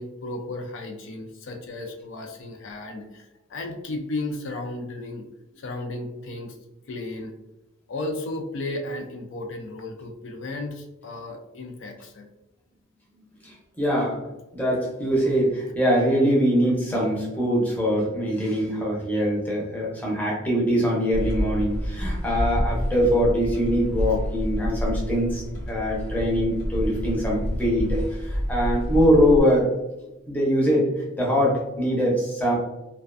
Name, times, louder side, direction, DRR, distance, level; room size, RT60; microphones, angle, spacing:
voice 1, 0.0-5.3 5.5-6.6 6.9-7.3 7.9-12.3, left 2 dB, 70° left, 3 dB, 0.4 m, -34 dB
voice 2, 13.4-14.3 14.5-29.7 30.3-30.9 31.2-32.6, equal, 10° left, -4 dB, 0.6 m, -23 dB
sound 1, 21.1-29.4, equal, 85° left, 0.9 m, -28 dB
2.4 x 2.2 x 2.4 m, 0.96 s
head